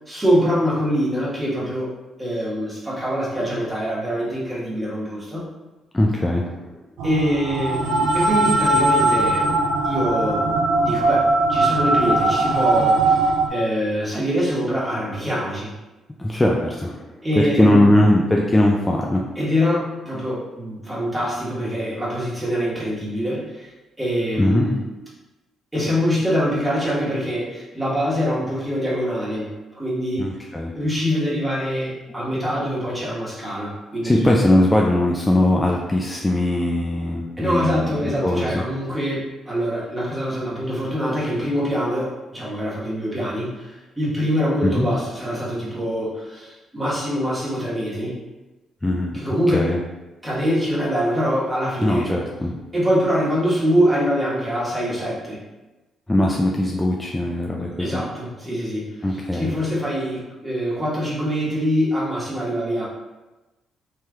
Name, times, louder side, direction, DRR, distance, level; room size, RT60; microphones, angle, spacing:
voice 1, 0.1-1.9 2.2-5.4 7.0-9.5 9.8-10.5 10.8-15.7 17.2-17.9 19.4-23.7 24.0-24.8 25.7-30.3 30.7-34.3 37.4-48.1 49.1-49.7 50.2-52.1 52.7-55.4 57.8-58.9 59.3-62.8, equal, 10° right, -7 dB, 1.1 m, -24 dB
voice 2, 5.9-6.7 16.2-19.2 24.4-24.7 30.2-30.7 32.1-32.4 34.0-38.6 44.6-44.9 48.8-49.2 49.5-49.8 51.8-52.5 56.1-58.0 59.0-59.5, left 1 dB, 15° left, -1 dB, 0.3 m, -20 dB
sound 1, 7.0-13.5, right 2 dB, 85° right, 0.4 m, -20 dB
3.2 x 2.8 x 2.3 m, 1.1 s
cardioid pair, 90°, 0 cm